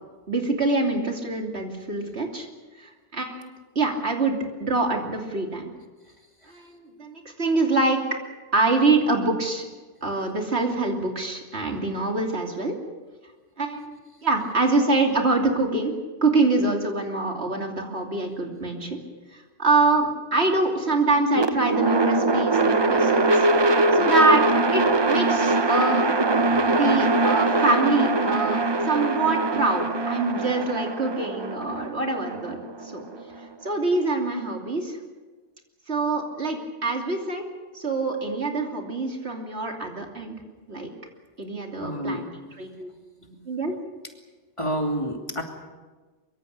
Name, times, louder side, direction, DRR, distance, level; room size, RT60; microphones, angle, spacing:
voice 1, 0.3-2.5 2.8-5.6 6.5-8.0 8.5-9.6 10.0-12.7 13.6-13.9 14.2-15.9 16.2-19.0 19.6-23.5 23.9-24.5 24.7-26.0 26.7-28.6 28.8-33.0 33.6-35.0 35.9-37.4 37.7-40.4 40.7-40.9 41.4-42.3 42.6-42.9 43.5-43.7, right 3 dB, 75° right, 2 dB, 3.2 m, -25 dB
sound 1, 21.3-33.5, right 2 dB, 25° right, 0.7 m, -22 dB
voice 2, 26.4-26.8 41.8-42.3 44.6-45.4, equal, 30° left, 2 dB, 2.9 m, -29 dB
23.5 x 23.5 x 6.7 m, 1.3 s
omnidirectional pair, 1.1 m